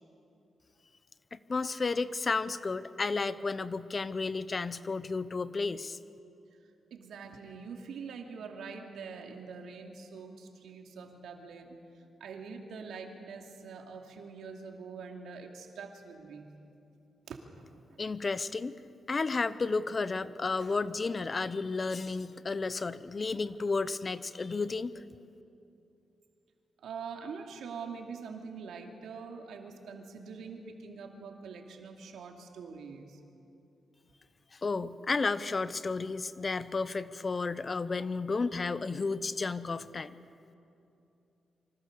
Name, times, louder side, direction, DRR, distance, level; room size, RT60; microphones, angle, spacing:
voice 1, 1.3-6.0 18.0-18.7 19.1-25.0 34.5-40.2, left 4 dB, 35° left, 14 dB, 0.8 m, -32 dB
voice 2, 6.9-11.8 12.2-16.5 17.3-17.6 26.8-33.2, right 5 dB, 90° right, 2 dB, 2.7 m, -44 dB
26.0 x 25.0 x 6.8 m, 2.7 s
cardioid pair, 100°, 0 cm